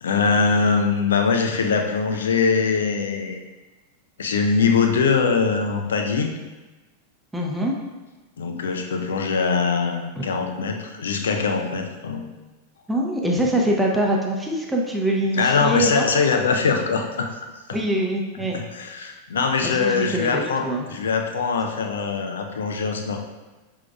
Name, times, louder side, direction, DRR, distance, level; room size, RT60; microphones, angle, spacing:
voice 1, 0.0-3.4 4.2-6.3 8.4-12.3 15.3-17.8 18.5-23.2, left 5 dB, 65° left, 4 dB, 0.5 m, -22 dB
voice 2, 7.3-7.7 10.2-10.3 12.9-16.1 17.7-18.6 19.6-20.9, right 1 dB, 5° right, -2 dB, 0.8 m, -24 dB
5.9 x 3.6 x 2.3 m, 1.2 s
figure-of-eight pair, 90°, 0 cm